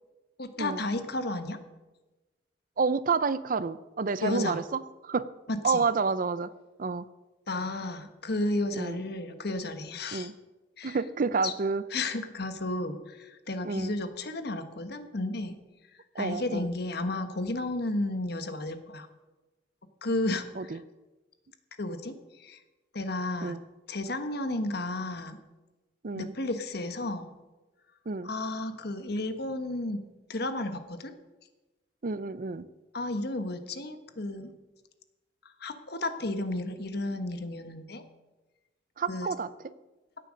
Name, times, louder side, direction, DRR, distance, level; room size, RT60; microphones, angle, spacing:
voice 1, 0.4-1.6 4.2-4.6 5.5-5.8 7.5-10.3 10.8-11.0 11.4-11.5 11.9-15.6 16.2-19.1 20.0-20.8 21.8-22.6 22.9-23.6 23.9-25.4 26.1-27.3 28.2-30.0 30.3-31.1 32.9-34.5 35.6-38.0 39.1-39.3, left 2 dB, 60° left, 9 dB, 1.3 m, -33 dB
voice 2, 2.8-5.3 5.6-6.5 6.8-7.1 8.7-9.0 10.1-10.3 10.8-11.8 13.6-13.9 16.2-16.7 20.6-20.8 23.4-23.6 26.0-26.3 28.1-28.3 32.0-32.7 39.0-39.5, right 4 dB, 50° right, 16 dB, 0.5 m, -29 dB
16.5 x 9.2 x 6.4 m, 1.1 s
head